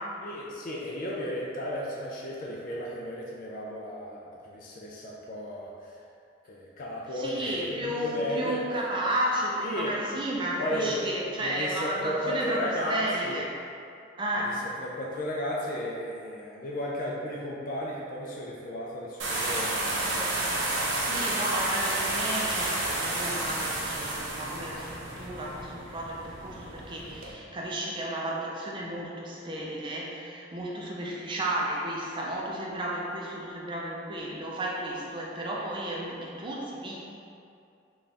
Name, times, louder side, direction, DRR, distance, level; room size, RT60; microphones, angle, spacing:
voice 1, 0.2-5.9 6.5-8.6 9.6-9.9 10.6-11.1 11.4-13.4 14.8-20.3 21.0-21.4, equal, 45° left, -4 dB, 0.4 m, -34 dB
voice 2, 7.1-13.5 14.2-14.6 20.7-37.1, right 1 dB, 25° right, -4 dB, 0.4 m, -33 dB
sound 1, 19.2-27.3, right 2 dB, 75° right, 0.7 m, -31 dB
4.1 x 2.4 x 3.3 m, 2.5 s
head